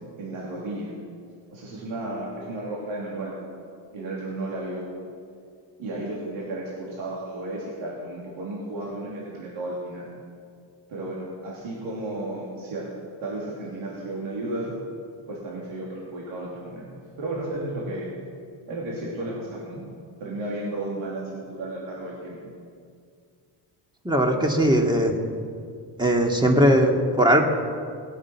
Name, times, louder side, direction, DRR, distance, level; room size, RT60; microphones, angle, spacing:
voice 1, 0.2-0.9 1.5-3.3 3.9-4.9 5.8-10.1 10.9-12.9 13.2-14.7 15.3-16.9 17.2-18.1 18.7-19.9 20.2-22.4, right 2 dB, 75° right, -5 dB, 3.2 m, -33 dB
voice 2, 24.0-25.1 26.0-27.4, equal, 10° right, 1 dB, 2.2 m, -19 dB
19.0 x 8.6 x 6.0 m, 2.2 s
cardioid pair, 75°, 48 cm